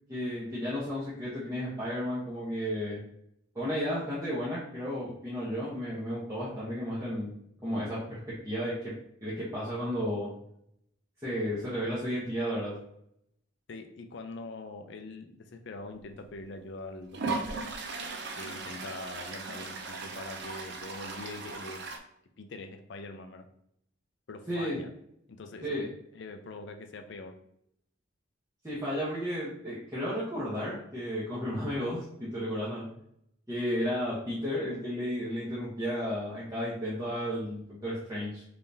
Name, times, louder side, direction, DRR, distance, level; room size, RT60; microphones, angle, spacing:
voice 1, 0.1-3.0 3.5-7.3 7.6-8.9 9.2-10.3 11.2-12.7 24.5-24.8 25.6-25.9 28.6-32.9 33.5-38.4, equal, 15° right, -10 dB, 0.9 m, -33 dB
voice 2, 13.7-17.6 18.4-21.9 22.4-23.5 24.3-24.9 25.3-25.8 26.1-27.4, left 2 dB, 55° left, 6 dB, 0.4 m, -43 dB
Toilet flush, 16.2-16.3 17.1-22.0, right 3 dB, 50° right, 0.4 m, -37 dB
3.6 x 3.3 x 2.7 m, 0.73 s
head